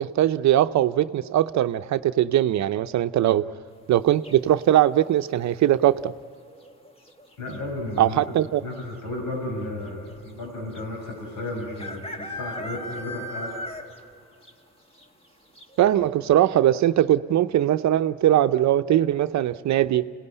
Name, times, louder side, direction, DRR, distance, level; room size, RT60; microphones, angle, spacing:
voice 1, 0.0-3.4 3.9-6.1 8.0-8.6 15.8-20.1, right 12 dB, 65° right, 11 dB, 0.7 m, -21 dB
sound 1, 4.2-4.7 6.5-6.9 7.2-7.3 7.5-8.0 8.8-8.9 9.1-9.2 10.8-10.9 11.8-14.1 14.4-14.5 15.0-15.1 15.6-15.7, left 1 dB, 20° left, 1.6 m, -36 dB
voice 2, 7.4-8.2 8.6-13.5, left 1 dB, 75° left, -1 dB, 5.6 m, -33 dB
26.0 x 18.0 x 9.8 m, 2.6 s
cardioid pair, 90°, 30 cm